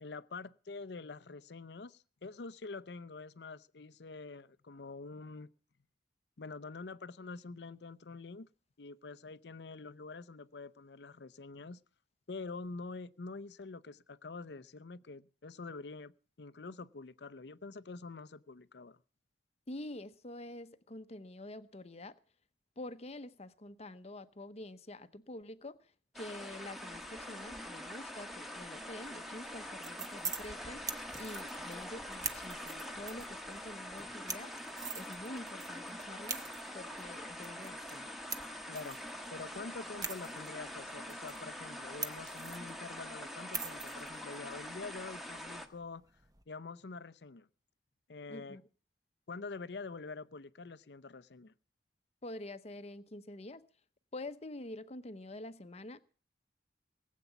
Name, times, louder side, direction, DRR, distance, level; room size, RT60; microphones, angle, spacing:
voice 1, 0.0-5.5 6.4-8.5 8.8-11.8 12.3-19.0 38.7-46.0 46.5-47.5 48.1-48.6 49.3-51.5, left 3 dB, 70° left, 0.6 m, -46 dB
voice 2, 19.7-22.2 22.8-30.9 31.2-34.5 34.9-36.4 36.7-38.1 48.3-48.6 52.2-53.7 54.1-56.0, left 1 dB, 35° left, 0.9 m, -47 dB
sound 1, 26.1-45.7, left 1 dB, ahead, 1.3 m, -45 dB
sound 2, 29.5-46.4, right 5 dB, 20° right, 1.0 m, -46 dB
19.5 x 8.4 x 7.0 m
head